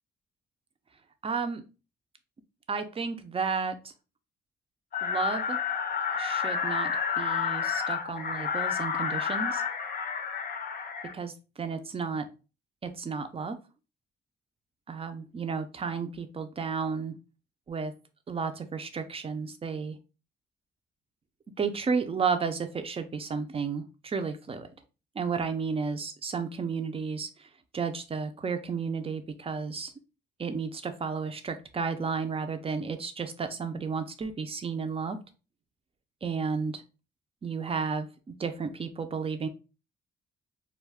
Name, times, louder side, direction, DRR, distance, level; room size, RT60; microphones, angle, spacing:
voice 1, 1.2-1.6 2.7-3.9 5.0-5.6 6.2-9.6 11.1-11.3 11.6-12.3 12.8-13.6 14.9-17.1 17.7-17.9 18.3-20.0 21.6-24.7 25.2-27.3 27.7-29.9 30.4-35.2 36.2-36.8 37.4-39.5, right 5 dB, 30° right, 8 dB, 0.5 m, -32 dB
sound 1, 4.9-11.1, left 6 dB, 50° left, 0.5 m, -30 dB
2.3 x 2.2 x 3.4 m, 0.32 s
cardioid pair, 90°, 20 cm